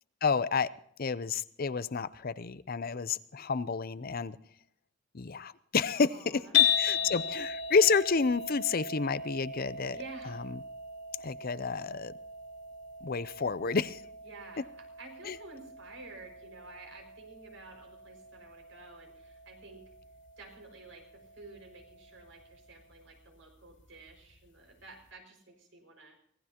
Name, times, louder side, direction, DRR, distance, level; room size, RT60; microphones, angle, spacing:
voice 1, 0.2-0.7 1.0-4.4 5.1-10.0 11.2-12.1 13.0-14.0 15.3-15.4, left 5 dB, 50° left, 15 dB, 0.6 m, -30 dB
voice 2, 5.9-6.5 6.8-7.4 9.9-10.4 14.2-19.9 20.4-26.2, right 3 dB, 70° right, 3 dB, 5.8 m, -51 dB
sound 1, 6.5-22.8, left 8 dB, 65° left, 2.5 m, -36 dB
24.5 x 17.5 x 2.9 m, 0.68 s
head